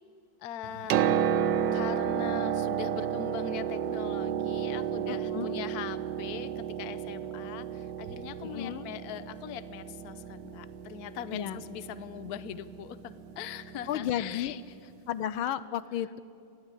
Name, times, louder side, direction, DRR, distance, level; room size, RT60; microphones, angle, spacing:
voice 1, 0.4-1.1 1.7-13.0 13.4-14.6, left 9 dB, 60° left, 14 dB, 1.2 m, -41 dB
Piano, 0.6-14.4 15.5-15.6, right 9 dB, 65° right, 1.3 m, -32 dB
voice 2, 5.1-5.6 8.4-8.9 11.3-11.6 13.9-14.5 15.1-16.2, left 10 dB, 80° left, 15 dB, 1.5 m, -33 dB
22.5 x 15.0 x 9.8 m, 2.5 s
omnidirectional pair, 2.3 m